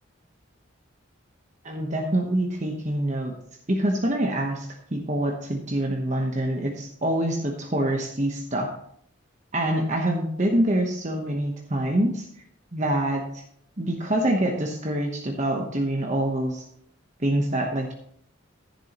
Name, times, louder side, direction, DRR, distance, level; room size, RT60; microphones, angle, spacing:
voice 1, 1.6-3.3 3.7-8.7 9.5-12.3 12.7-13.2 13.8-16.6 17.2-17.9, right 1 dB, 35° right, 1 dB, 1.1 m, -25 dB
11.0 x 10.5 x 3.0 m, 0.68 s
head